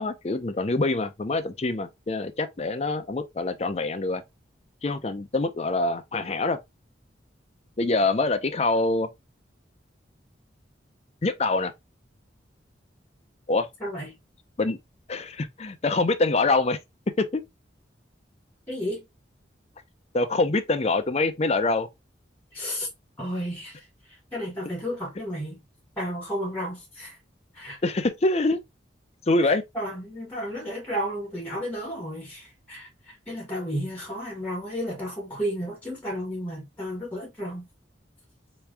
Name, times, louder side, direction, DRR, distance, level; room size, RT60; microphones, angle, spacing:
voice 1, 0.0-4.2 4.8-6.6 7.8-9.1 11.2-11.7 13.5-13.7 14.6-14.8 15.1-16.8 17.2-17.4 20.1-21.9 27.8-28.6 29.3-29.6, left 2 dB, 35° left, 0.5 m, -25 dB
voice 2, 13.8-14.2 18.7-19.1 22.5-22.9 23.2-23.8 24.3-25.6 26.0-27.2 27.5-27.8 29.4-37.7, equal, 10° left, 1.6 m, -32 dB
3.5 x 3.0 x 3.3 m
head